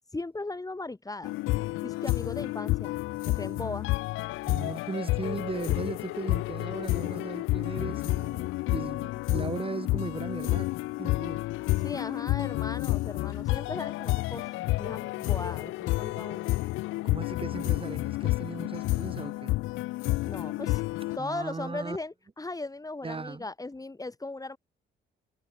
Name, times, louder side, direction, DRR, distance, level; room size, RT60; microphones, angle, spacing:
voice 1, 0.1-1.3 1.8-3.0 3.4-3.9 11.8-16.5 20.2-20.8 21.1-24.6, left 2 dB, 15° left, 3.3 m, -38 dB
sound 1, 1.2-21.2, left 19 dB, 85° left, 0.4 m, -30 dB
voice 2, 4.5-10.7 11.0-11.4 17.0-19.5 21.2-22.0 23.0-23.4, right 4 dB, 25° right, 2.7 m, -37 dB
cardioid pair, 90°, 20 cm